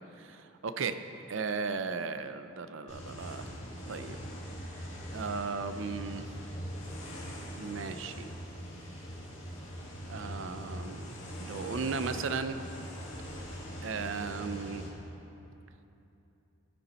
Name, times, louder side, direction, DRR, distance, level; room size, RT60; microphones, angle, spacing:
voice 1, 0.2-1.0 1.3-3.5 3.9-4.2 4.8-4.9 5.1-6.3 7.6-8.3 10.1-12.6 13.8-14.9, right 5 dB, 65° right, 10 dB, 0.5 m, -36 dB
sound 1, 2.9-14.9, equal, 65° left, 2.1 m, -42 dB
15.5 x 6.8 x 4.3 m, 2.9 s
head